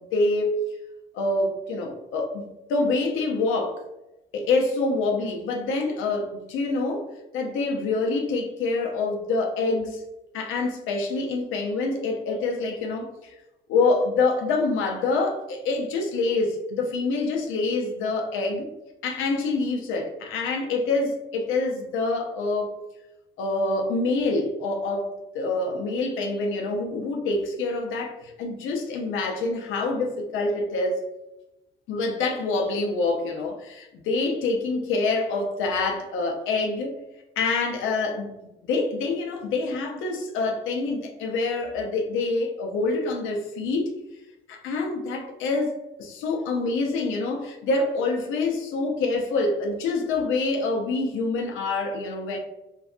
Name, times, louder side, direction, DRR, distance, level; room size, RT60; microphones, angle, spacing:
voice 1, 0.1-0.6 1.1-3.8 4.3-10.0 10.3-13.4 13.7-18.7 19.0-22.8 23.4-31.0 31.9-37.0 37.4-38.4 38.6-43.9 44.5-52.4, left 3 dB, 90° left, 2 dB, 0.5 m, -26 dB
2.6 x 2.2 x 2.3 m, 0.97 s
cardioid pair, 90°, 20 cm